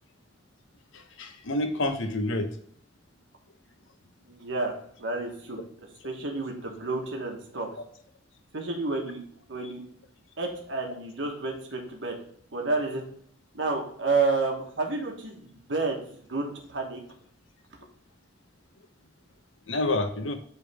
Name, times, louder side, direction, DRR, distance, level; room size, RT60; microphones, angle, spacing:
voice 1, 0.9-2.5 17.8-17.9 19.7-20.3, left 2 dB, 90° left, 7 dB, 0.9 m, -28 dB
voice 2, 4.3-5.6 6.0-7.7 8.5-9.2 9.5-9.8 10.4-12.1 12.5-13.0 13.5-17.0, right 3 dB, 75° right, 1 dB, 1.3 m, -30 dB
8.2 x 3.6 x 3.4 m, 0.63 s
head